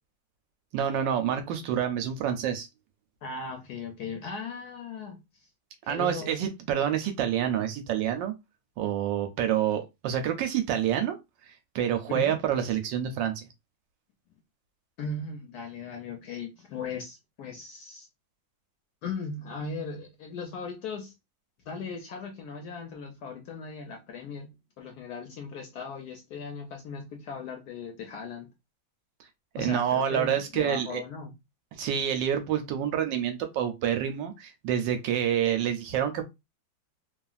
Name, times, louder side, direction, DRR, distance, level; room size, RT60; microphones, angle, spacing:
voice 1, 0.7-2.7 5.9-8.3 8.8-11.2 11.7-13.5 29.6-31.0 31.8-36.3, right 9 dB, 75° right, 1.2 m, -27 dB
voice 2, 3.2-5.5 5.8-6.4 12.1-12.3 15.0-18.1 19.0-21.1 21.6-28.5 29.6-31.3, left 4 dB, 70° left, 0.9 m, -38 dB
3.0 x 2.4 x 2.3 m
omnidirectional pair, 2.1 m